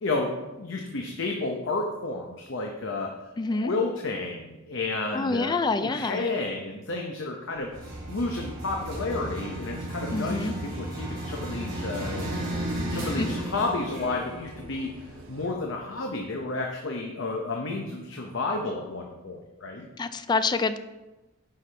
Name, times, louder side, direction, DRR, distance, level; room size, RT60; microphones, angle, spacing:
voice 1, 0.0-3.1 3.5-12.3 12.9-19.9, left 3 dB, 65° left, 1 dB, 0.8 m, -31 dB
voice 2, 3.4-3.7 5.1-6.3 10.1-10.5 13.2-13.3 20.0-20.8, left 3 dB, 20° left, 11 dB, 0.4 m, -27 dB
sound 1, 7.5-15.5, right 2 dB, 80° right, 1.1 m, -48 dB
sound 2, 7.7-15.7, right 1 dB, 45° right, 3.0 m, -34 dB
9.8 x 5.7 x 3.4 m, 1.1 s
head